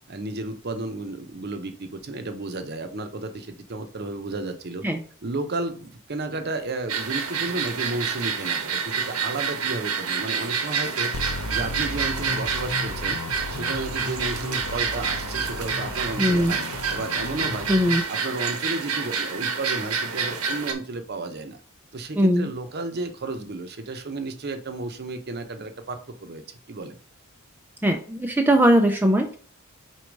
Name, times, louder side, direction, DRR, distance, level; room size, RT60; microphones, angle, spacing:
voice 1, 0.1-4.9 5.2-11.1 11.5-13.2 13.5-17.7 18.1-21.6 21.9-26.4 26.7-27.0, right 2 dB, 45° right, 8 dB, 0.7 m, -32 dB
sound 1, 6.9-20.7, right 5 dB, 75° right, 1.0 m, -28 dB
sound 2, 11.1-18.0, left 2 dB, 80° left, 0.7 m, -34 dB
voice 2, 16.2-16.5 17.7-18.0 22.2-22.5 27.8-29.4, equal, 10° right, 5 dB, 0.4 m, -20 dB
4.7 x 4.1 x 5.1 m, 0.42 s
head